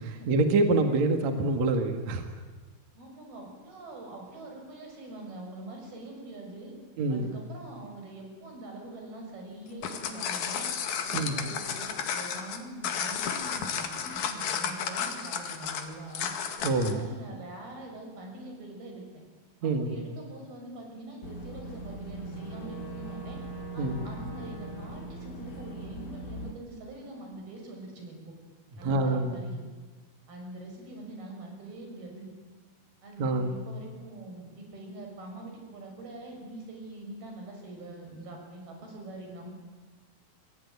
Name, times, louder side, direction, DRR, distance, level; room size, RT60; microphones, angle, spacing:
voice 1, 0.0-2.2 7.0-7.3 11.1-11.4 16.6-17.0 19.6-20.0 23.8-24.1 28.8-29.4 33.2-33.6, right 2 dB, 55° right, 6 dB, 2.9 m, -26 dB
voice 2, 3.0-6.7 7.1-10.7 11.0-16.3 16.7-19.2 19.6-23.4 23.7-28.4 28.8-29.6 30.3-32.3 33.0-39.5, right 2 dB, 90° right, 2 dB, 8.5 m, -44 dB
sound 1, 9.7-17.0, left 7 dB, 80° left, 3.8 m, -33 dB
Boat Water vehicle / Engine, 21.2-26.5, right 2 dB, 30° left, 3.1 m, -40 dB
27.5 x 22.0 x 9.6 m, 1.4 s
omnidirectional pair, 4.2 m